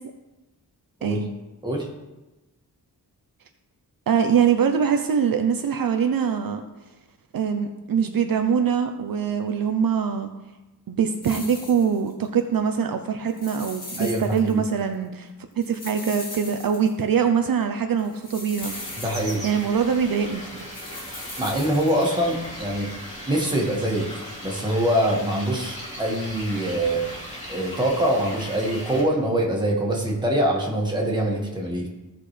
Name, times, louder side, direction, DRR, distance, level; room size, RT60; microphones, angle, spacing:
voice 1, 4.1-6.6 7.3-10.3 10.9-15.3 15.6-18.7 19.4-20.6, right 7 dB, 60° right, 6 dB, 0.7 m, -23 dB
sound 1, 11.2-12.3 13.3-14.7 14.9-15.0 15.6-17.1 18.0-19.8 20.6-22.5, left 2 dB, 40° left, 2.3 m, -39 dB
voice 2, 14.0-14.7 19.0-19.5 21.4-22.9 23.3-27.0 27.5-31.9, right 1 dB, 10° right, -2 dB, 1.8 m, -24 dB
sound 2, 18.6-29.0, equal, 20° left, 2.8 m, -38 dB
15.5 x 5.9 x 3.3 m, 1.1 s
wide cardioid pair, 155°, 38 cm